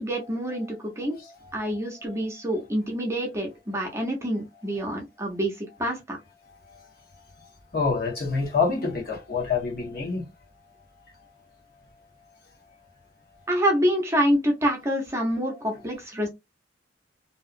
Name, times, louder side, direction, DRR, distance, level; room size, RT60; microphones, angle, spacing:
voice 1, 0.0-1.1 1.5-6.2 13.5-16.3, equal, 15° right, 0.7 m, -26 dB
voice 2, 1.1-1.8 2.1-2.2 6.7-6.9 7.7-10.3, left 4 dB, 55° left, 1.2 m, -27 dB
2.7 x 2.3 x 2.4 m
head